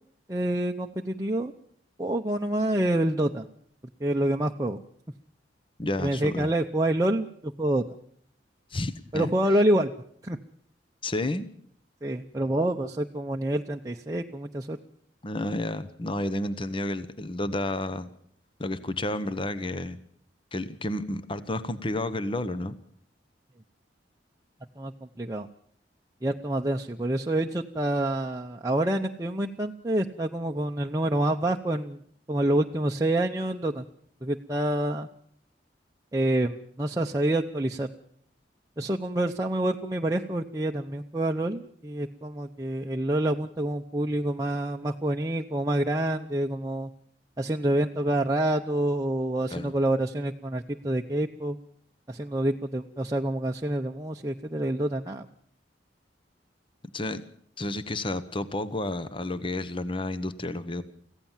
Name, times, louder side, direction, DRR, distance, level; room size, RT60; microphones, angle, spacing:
voice 1, 0.3-1.5 2.0-3.4 4.0-4.8 6.0-7.8 9.1-9.9 10.2-10.4 12.0-14.8 24.8-24.9 25.2-25.5 26.2-32.0 32.3-33.8 34.2-35.1 36.1-37.9 38.8-46.9 47.4-51.6 52.1-55.2, right 1 dB, 20° right, 1 dB, 0.8 m, -27 dB
voice 2, 5.8-6.5 8.7-9.6 11.0-11.5 15.2-18.1 18.6-20.0 20.5-22.8 49.5-49.7 56.9-57.2 57.6-60.8, left 1 dB, 30° left, 13 dB, 1.0 m, -31 dB
25.0 x 15.5 x 7.3 m, 0.65 s
head